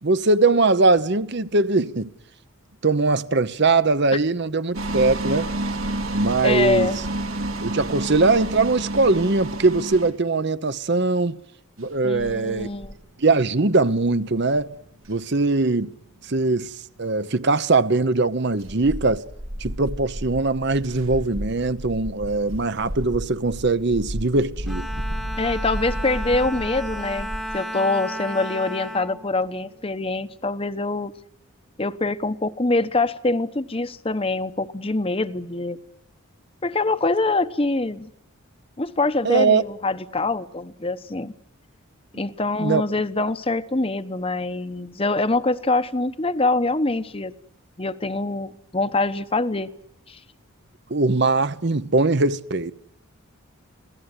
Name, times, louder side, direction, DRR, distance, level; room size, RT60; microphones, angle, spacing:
voice 1, 0.0-2.1 2.8-5.5 6.1-6.9 7.6-11.4 11.8-12.7 13.2-14.7 15.1-15.9 16.2-16.7 17.0-19.2 19.6-24.9 39.2-39.6 42.6-42.8 50.9-52.7, right 3 dB, 55° right, 0.9 m, -21 dB
sound 1, 4.7-10.1, right 2 dB, 85° right, 4.4 m, -28 dB
voice 2, 6.4-7.0 12.0-12.9 25.4-31.1 31.8-35.8 36.6-38.1 38.8-41.3 42.2-47.3 47.8-49.7 50.1-50.2, left 2 dB, 25° left, 0.9 m, -24 dB
sound 2, 11.8-17.8 18.1-27.6, equal, 70° right, 1.9 m, -34 dB
Bowed string instrument, 24.7-30.2, equal, ahead, 1.2 m, -34 dB
26.0 x 17.5 x 9.8 m
head